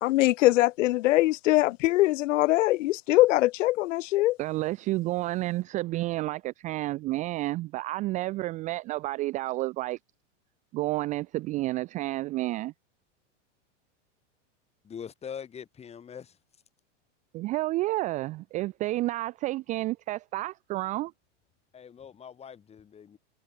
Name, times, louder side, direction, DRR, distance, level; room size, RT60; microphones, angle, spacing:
voice 1, 0.0-4.4, left 17 dB, 90° left, 0.5 m, -22 dB
voice 2, 4.4-10.0 10.7-12.7 17.3-21.1, right 18 dB, 20° right, 0.5 m, -30 dB
voice 3, 14.8-16.3 21.7-23.2, left 7 dB, 15° left, 5.4 m, -43 dB
supercardioid pair, 155°, 36 cm